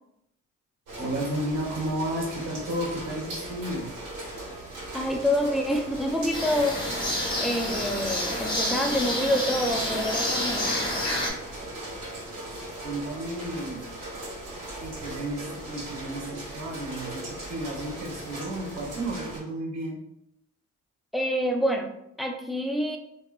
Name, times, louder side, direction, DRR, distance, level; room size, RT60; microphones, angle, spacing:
sound 1, 0.9-19.4, right 1 dB, 80° right, 1.1 m, -39 dB
voice 1, 1.0-3.9 12.8-13.8 14.8-20.0, right 1 dB, 60° right, -1 dB, 1.0 m, -32 dB
voice 2, 4.9-6.8 7.4-10.8 21.1-21.9 22.2-23.0, equal, ahead, 2 dB, 0.3 m, -27 dB
sound 2, 6.3-11.3, left 1 dB, 15° left, 0.7 m, -29 dB
3.0 x 2.2 x 2.3 m, 0.80 s
cardioid pair, 90°, 30 cm